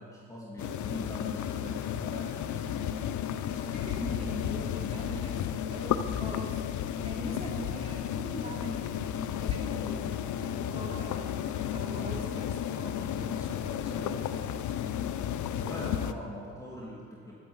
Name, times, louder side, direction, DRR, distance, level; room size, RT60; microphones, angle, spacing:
voice 1, 0.0-3.0 15.6-17.3, equal, 10° left, -6 dB, 2.8 m, -42 dB
sound 1, 0.6-16.1, left 9 dB, 75° left, 0.7 m, -33 dB
voice 2, 3.3-14.6, right 1 dB, 20° right, -4 dB, 4.2 m, -43 dB
11.5 x 9.0 x 8.0 m, 2.2 s
cardioid pair, 90°, 30 cm